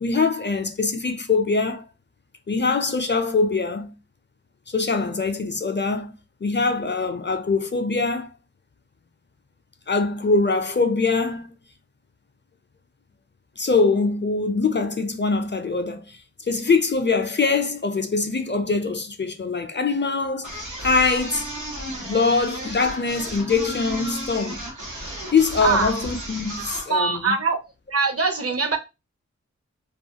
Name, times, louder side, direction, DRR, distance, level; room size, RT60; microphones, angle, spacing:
voice 1, 0.0-1.8 2.5-3.9 4.7-6.1 6.4-8.4 9.9-11.5 13.6-21.5 22.0-24.6 25.3-27.4, left 4 dB, 40° left, 0.4 m, -23 dB
sound 1, 20.4-26.9, right 1 dB, 90° right, 0.9 m, -34 dB
voice 2, 25.6-25.9 26.9-27.6 27.9-28.8, right 4 dB, 55° right, 0.6 m, -22 dB
2.4 x 2.3 x 2.8 m
wide cardioid pair, 50°, 29 cm